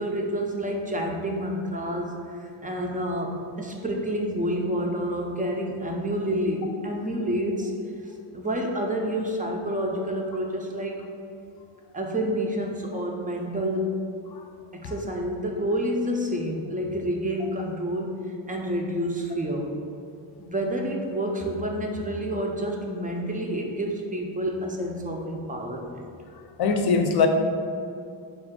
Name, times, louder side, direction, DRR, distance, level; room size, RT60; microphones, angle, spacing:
voice 1, 0.0-7.7 8.3-11.0 11.9-14.0 14.7-18.2 18.5-19.7 20.4-26.0, equal, 20° right, 0 dB, 0.4 m, -29 dB
voice 2, 26.6-27.3, left 5 dB, 55° left, 5 dB, 0.5 m, -22 dB
4.4 x 2.4 x 3.6 m, 2.4 s
cardioid pair, 90°, 48 cm